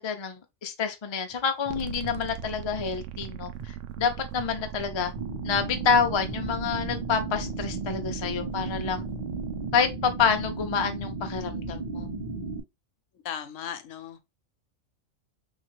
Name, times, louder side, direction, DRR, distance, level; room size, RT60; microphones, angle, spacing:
voice 1, 0.0-5.1 5.4-9.0 9.7-12.1, left 6 dB, 50° left, 0.3 m, -28 dB
sound 1, 1.3-2.9 3.2-4.5 4.8-9.1, right 3 dB, 20° right, 0.7 m, -47 dB
sound 2, 1.7-9.7, right 10 dB, 75° right, 0.9 m, -39 dB
sound 3, 5.2-12.6, right 3 dB, 40° right, 1.2 m, -34 dB
voice 2, 13.2-14.2, left 9 dB, 80° left, 1.0 m, -36 dB
3.6 x 2.9 x 3.0 m
omnidirectional pair, 1.3 m